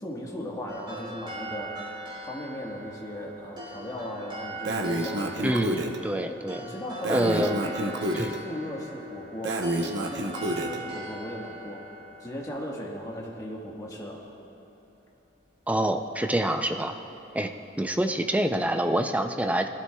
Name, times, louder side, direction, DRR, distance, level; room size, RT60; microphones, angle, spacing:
voice 1, 0.0-5.7 6.6-8.0 8.4-11.8 12.2-14.2, equal, 15° left, -3 dB, 1.4 m, -37 dB
sound 1, 0.7-13.9, right 1 dB, 25° right, 2.8 m, -41 dB
Breathing, 4.6-6.0 7.0-8.4 9.4-10.8, right 1 dB, 60° right, 0.8 m, -29 dB
voice 2, 5.4-6.6 7.1-7.6 8.1-8.4 15.7-16.9 17.3-17.5 17.8-19.7, right 1 dB, 5° right, 6 dB, 0.4 m, -26 dB
19.5 x 12.5 x 2.3 m, 2.8 s
head